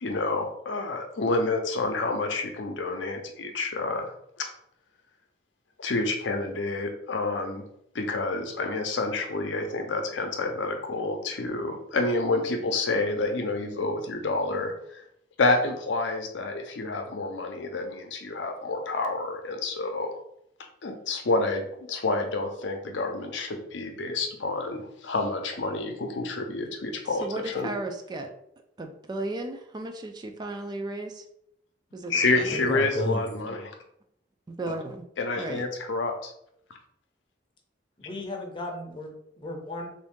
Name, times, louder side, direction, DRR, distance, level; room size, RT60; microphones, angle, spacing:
voice 1, 0.0-4.1 4.4-4.5 5.8-7.6 7.9-15.0 15.4-20.2 20.8-27.7 32.1-33.7 35.2-36.3, left 3 dB, 75° left, 4 dB, 0.6 m, -28 dB
voice 2, 27.1-28.3 28.8-31.2 31.9-32.6 34.6-35.0 35.4-35.7, right 2 dB, 25° right, 5 dB, 0.3 m, -35 dB
voice 3, 32.5-33.2 38.0-39.9, left 2 dB, 25° left, 2 dB, 0.6 m, -33 dB
3.4 x 2.6 x 3.6 m, 0.74 s
head